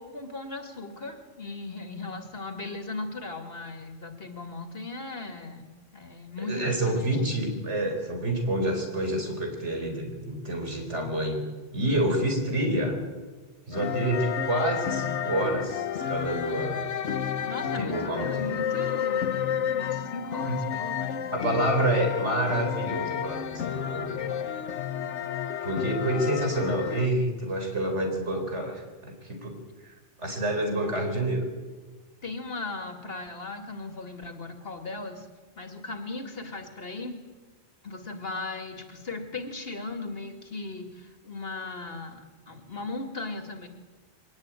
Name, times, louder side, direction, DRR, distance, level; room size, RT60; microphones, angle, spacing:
voice 1, 0.0-5.7 5.9-7.2 17.5-21.4 32.2-35.3 35.6-37.2 37.8-43.7, left 3 dB, 55° left, 6 dB, 2.6 m, -37 dB
voice 2, 6.4-11.4 11.7-13.0 13.7-16.9 17.8-18.5 20.5-20.7 21.3-24.2 25.6-31.5, right 1 dB, 80° right, 4 dB, 4.7 m, -28 dB
sound 1, 13.7-27.1, left 8 dB, 90° left, 1.3 m, -31 dB
23.0 x 18.5 x 9.1 m, 1.3 s
omnidirectional pair, 1.2 m